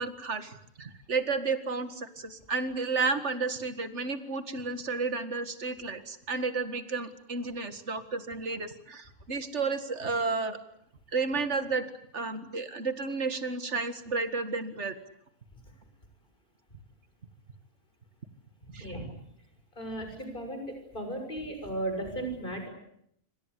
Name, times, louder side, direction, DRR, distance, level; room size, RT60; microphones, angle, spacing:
voice 1, 0.0-10.6 11.1-11.9 12.1-14.9 18.7-18.9, right 4 dB, 55° right, 10 dB, 2.2 m, -32 dB
voice 2, 19.8-22.7, right 1 dB, 35° left, 5 dB, 6.8 m, -35 dB
26.0 x 26.0 x 8.3 m, 0.72 s
omnidirectional pair, 1.4 m